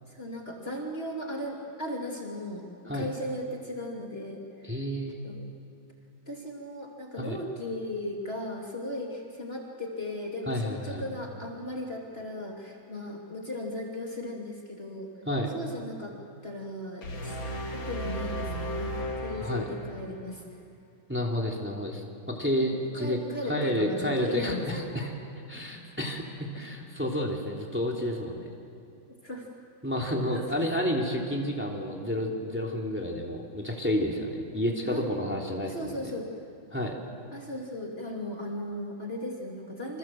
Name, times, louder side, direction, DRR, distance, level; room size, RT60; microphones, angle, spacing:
voice 1, 0.1-4.8 5.2-5.5 6.3-15.1 15.5-16.1 16.4-17.4 17.7-20.4 22.9-24.9 26.5-26.7 29.2-29.5 30.0-30.6 34.9-35.1 35.6-36.3 37.3-40.0, left 1 dB, 30° left, -1 dB, 3.0 m, -36 dB
voice 2, 4.7-5.2 7.2-7.4 10.5-11.0 15.2-15.5 19.4-19.7 21.1-23.2 23.5-25.1 25.5-28.5 29.8-35.9 36.7-36.9, equal, 5° right, 0 dB, 3.0 m, -30 dB
sound 1, 17.0-20.2, equal, 80° left, 3.1 m, -35 dB
28.5 x 26.0 x 7.7 m, 2.5 s
omnidirectional pair, 2.1 m